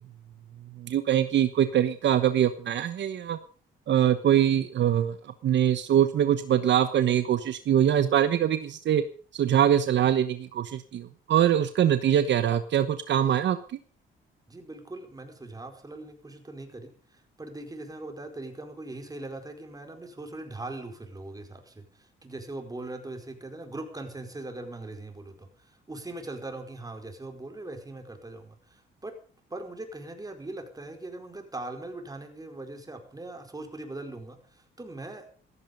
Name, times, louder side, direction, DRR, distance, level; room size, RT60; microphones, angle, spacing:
voice 1, 0.8-3.4 3.9-5.1 5.4-9.0 9.3-13.6, right 10 dB, 65° right, 11 dB, 1.1 m, -23 dB
voice 2, 14.5-29.1 29.5-35.3, right 2 dB, 20° right, 5 dB, 4.8 m, -40 dB
15.5 x 14.0 x 5.4 m, 0.43 s
cardioid pair, 90°, 20 cm